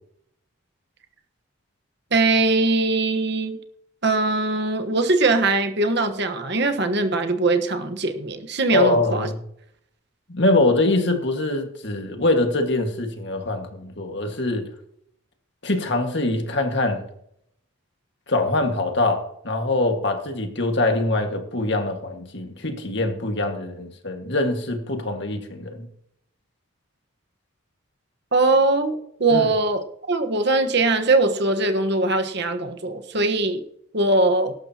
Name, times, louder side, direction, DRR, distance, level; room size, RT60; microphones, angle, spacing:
voice 1, 2.1-3.6 4.0-9.3 28.3-33.6 33.9-34.5, right 2 dB, 55° right, 6 dB, 1.3 m, -21 dB
voice 2, 8.7-9.4 10.3-14.6 15.6-17.0 18.3-25.9 29.3-29.5, left 2 dB, 55° left, 4 dB, 1.9 m, -23 dB
18.5 x 11.5 x 2.9 m, 0.73 s
head